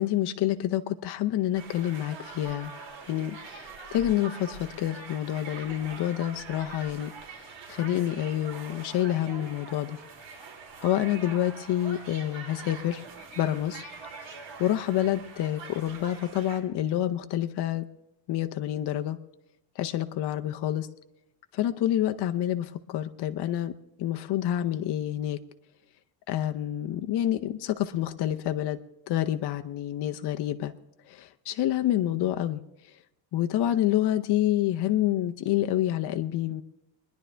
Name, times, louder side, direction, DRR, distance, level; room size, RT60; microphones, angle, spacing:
voice 1, 0.0-2.7 3.1-10.0 10.8-13.0 13.4-13.8 14.6-17.8 18.3-19.2 19.8-20.9 21.5-23.7 24.0-25.4 26.3-28.8 29.1-30.7 31.1-32.6 33.3-36.6, left 12 dB, 60° left, 6 dB, 0.7 m, -28 dB
sound 1, 1.5-16.6, right 4 dB, 75° right, 3.6 m, -44 dB
24.0 x 10.5 x 3.3 m, 0.87 s
cardioid pair, 140°, 45 cm